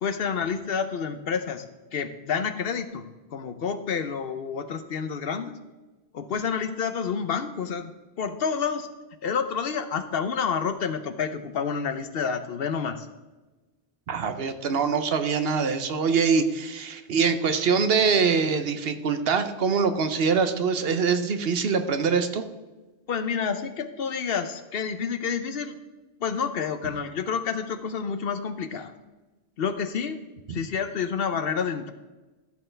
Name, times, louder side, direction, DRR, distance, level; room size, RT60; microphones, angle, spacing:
voice 1, 0.0-1.6 1.9-5.6 6.1-7.9 8.2-8.9 9.2-13.1 23.1-25.8 26.2-28.9 29.6-30.2 30.5-31.9, left 6 dB, 65° left, 9 dB, 0.9 m, -29 dB
voice 2, 14.1-22.4 30.5-30.6, right 5 dB, 65° right, 9 dB, 1.0 m, -24 dB
14.0 x 6.7 x 3.3 m, 1.2 s
omnidirectional pair, 1.1 m